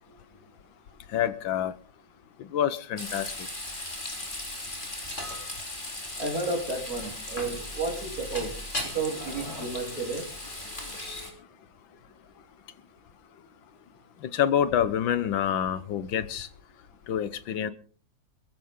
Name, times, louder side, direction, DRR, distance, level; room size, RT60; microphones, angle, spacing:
voice 1, 1.1-1.8 2.4-3.5 10.7-11.5 14.2-16.5 17.1-17.7, left 9 dB, 85° left, 1.8 m, -28 dB
Frying (food), 3.0-11.3, left 1 dB, 25° left, 3.4 m, -37 dB
voice 2, 6.2-8.5 8.8-10.3, right 3 dB, 50° right, 3.9 m, -32 dB
21.0 x 15.0 x 3.7 m
omnidirectional pair, 2.0 m